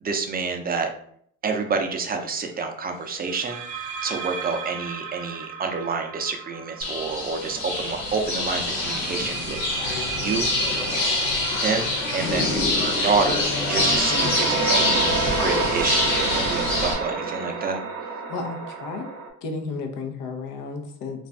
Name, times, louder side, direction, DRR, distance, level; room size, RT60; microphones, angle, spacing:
voice 1, 0.0-0.9 1.4-3.6 4.0-10.5 11.6-17.8, right 4 dB, 25° right, 4 dB, 0.5 m, -28 dB
sound 1, 1.5-1.7 3.2-8.0 8.8-19.3, right 4 dB, 70° right, 0.8 m, -31 dB
sound 2, 6.8-16.9, left 2 dB, 85° left, 1.2 m, -25 dB
voice 2, 18.3-19.1 19.4-21.3, left 4 dB, 65° left, 4 dB, 0.7 m, -33 dB
2.5 x 2.4 x 3.3 m, 0.64 s
supercardioid pair, 85°, 35 cm